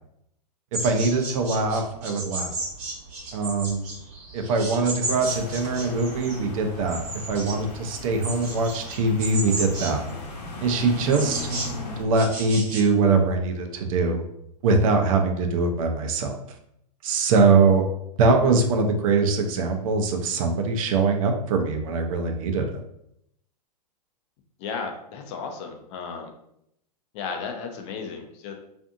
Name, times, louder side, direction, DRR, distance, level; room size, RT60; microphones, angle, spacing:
sound 1, 0.7-12.8, right 2 dB, 35° right, 0.9 m, -34 dB
voice 1, 0.8-2.5 3.3-3.8 4.3-10.0 10.6-11.5 12.0-14.2 14.6-16.4 17.0-17.8 18.2-22.8, right 3 dB, 55° right, 5 dB, 0.5 m, -22 dB
sound 2, 5.0-12.0, left 2 dB, 75° left, 0.9 m, -37 dB
voice 2, 24.6-26.3 27.1-28.5, left 5 dB, 45° left, 3 dB, 0.5 m, -34 dB
2.5 x 2.5 x 2.5 m, 0.76 s
hypercardioid pair, 120°, 21 cm